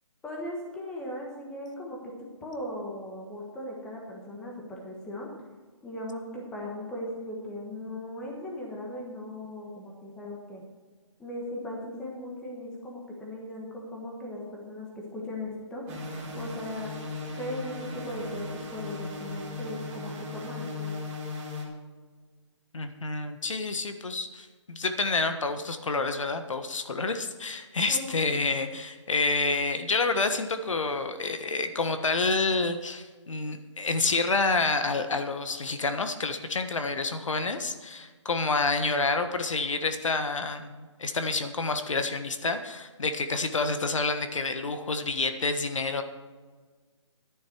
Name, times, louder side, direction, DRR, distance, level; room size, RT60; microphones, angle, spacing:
voice 1, 0.2-5.3 5.8-10.6 11.2-15.8 16.3-17.0 17.3-20.9 27.9-28.3, left 1 dB, 5° left, -2 dB, 1.3 m, -38 dB
sound 1, 15.9-21.6, left 2 dB, 15° right, 1.7 m, -37 dB
voice 2, 22.7-46.0, left 3 dB, 80° left, 8 dB, 1.4 m, -28 dB
12.0 x 10.5 x 4.6 m, 1.4 s
hypercardioid pair, 170°, 16 cm